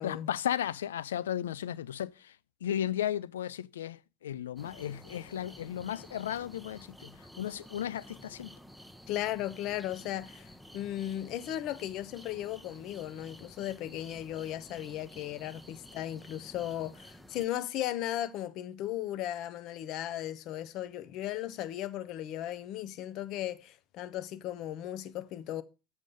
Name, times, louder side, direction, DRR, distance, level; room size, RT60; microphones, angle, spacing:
voice 1, 0.0-2.3 2.6-7.1 7.4-8.6, left 10 dB, 75° left, 0.3 m, -35 dB
sound 1, 4.6-17.5, equal, 5° left, 0.8 m, -52 dB
voice 2, 9.1-25.6, left 12 dB, 55° left, 0.7 m, -36 dB
7.6 x 6.2 x 5.2 m
hypercardioid pair, 70°, 0 cm